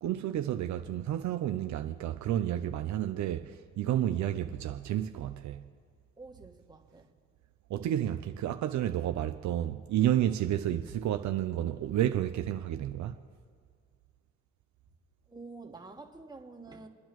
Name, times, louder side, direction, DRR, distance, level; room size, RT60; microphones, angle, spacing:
voice 1, 0.0-5.6 7.7-13.2, right 11 dB, 70° right, 0.5 m, -31 dB
voice 2, 6.2-7.1 15.3-16.9, right 3 dB, 15° right, 1.5 m, -48 dB
29.5 x 10.0 x 3.1 m
cardioid pair, 90°, 30 cm